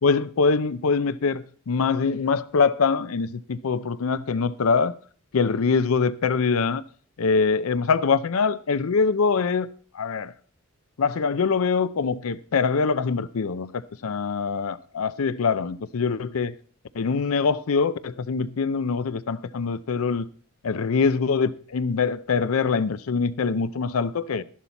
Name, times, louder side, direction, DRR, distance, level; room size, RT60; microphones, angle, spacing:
voice 1, 0.0-4.9 5.3-6.8 7.2-9.7 10.0-10.3 11.0-13.7 14.0-16.5 17.0-20.3 20.6-24.4, left 5 dB, 80° left, 0.5 m, -23 dB
12.5 x 11.0 x 4.1 m
head